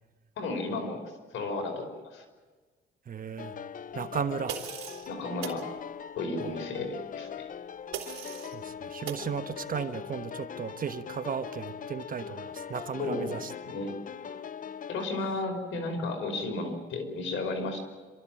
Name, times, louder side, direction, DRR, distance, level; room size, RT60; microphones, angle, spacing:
voice 1, 0.4-1.0 1.3-2.2 5.1-5.7 6.2-7.5 13.0-13.4 13.6-13.9 14.9-17.8, left 2 dB, 80° left, 4 dB, 4.9 m, -33 dB
voice 2, 3.1-3.5 3.9-4.6 8.5-13.5, right 7 dB, 45° right, 9 dB, 1.2 m, -35 dB
sound 1, 3.4-15.1, left 7 dB, 40° left, 0.6 m, -41 dB
sound 2, 4.5-5.1 5.4-5.6 7.9-8.5 9.1-9.3, right 10 dB, 85° right, 3.6 m, -38 dB
27.5 x 13.5 x 9.0 m, 1.4 s
cardioid pair, 90°, 20 cm